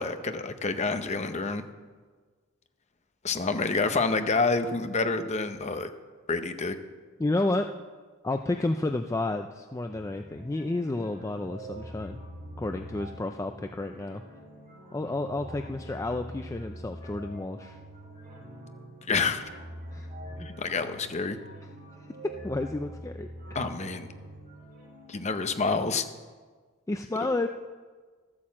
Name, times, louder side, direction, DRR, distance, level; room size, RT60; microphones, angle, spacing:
voice 1, 0.0-1.6 3.2-5.9 6.3-6.8 19.1-19.4 20.4-21.4 23.5-24.1 25.1-26.1, left 4 dB, 30° left, 8 dB, 0.8 m, -28 dB
voice 2, 7.2-7.7 8.2-12.2 12.6-14.2 14.9-17.8 19.9-20.1 22.2-23.3 26.9-27.5, left 2 dB, 15° left, 6 dB, 0.3 m, -31 dB
sound 1, 9.9-25.5, right 1 dB, 40° right, 3.6 m, -44 dB
13.0 x 8.7 x 7.4 m, 1.5 s
head